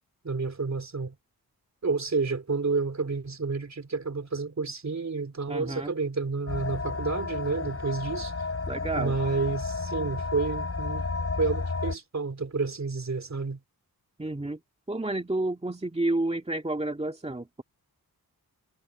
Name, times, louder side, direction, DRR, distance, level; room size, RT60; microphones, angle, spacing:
voice 1, 0.2-1.1 1.8-8.3 8.9-11.1 11.4-13.6, right 4 dB, 45° right, 3.3 m, -30 dB
voice 2, 5.5-5.9 8.7-9.2 14.2-14.6 14.9-17.6, right 2 dB, 15° right, 2.1 m, -30 dB
sound 1, 6.5-12.0, left 3 dB, 40° left, 6.6 m, -32 dB
wide cardioid pair, 115°, 37 cm